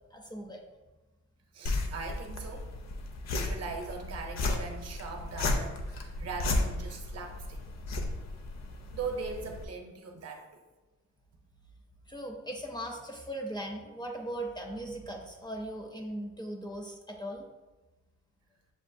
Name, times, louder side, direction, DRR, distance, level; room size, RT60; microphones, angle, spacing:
voice 1, 0.1-0.6 12.1-17.5, right 1 dB, 15° left, 1 dB, 0.4 m, -39 dB
voice 2, 1.5-2.7 3.3-7.6 8.9-10.6, right 4 dB, 55° right, 4 dB, 0.6 m, -40 dB
sound 1, 1.7-9.7, left 2 dB, 65° left, 0.6 m, -34 dB
7.1 x 2.4 x 2.5 m, 1.2 s
wide cardioid pair, 170°, 30 cm